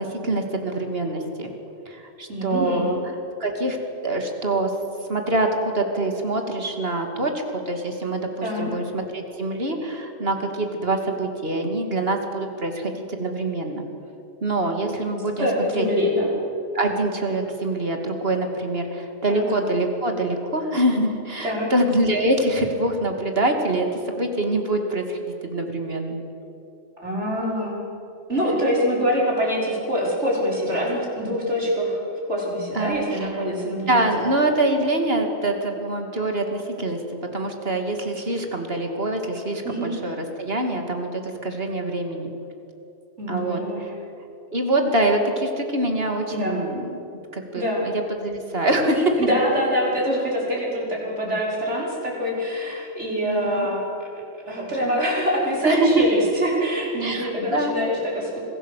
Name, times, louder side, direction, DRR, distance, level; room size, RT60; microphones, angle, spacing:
voice 1, 0.0-1.5 1.9-3.0 3.4-3.8 4.0-4.7 5.1-7.3 7.7-13.8 14.4-15.5 15.7-15.8 16.7-26.2 32.7-33.4 33.9-37.0 37.3-42.3 43.3-43.9 44.5-46.9 47.3-49.2 52.6-52.9 53.2-53.7 55.6-56.0 57.0-57.7, right 1 dB, 60° right, 4 dB, 2.8 m, -25 dB
voice 2, 2.3-2.8 8.4-8.8 15.4-16.3 19.3-19.5 21.4-21.7 27.0-27.8 28.3-32.0 32.3-34.1 39.6-39.9 43.2-43.8 46.3-46.6 47.5-47.9 49.2-53.8 54.4-58.4, equal, 85° right, -3 dB, 6.1 m, -24 dB
25.5 x 17.0 x 8.4 m, 2.8 s
omnidirectional pair, 1.2 m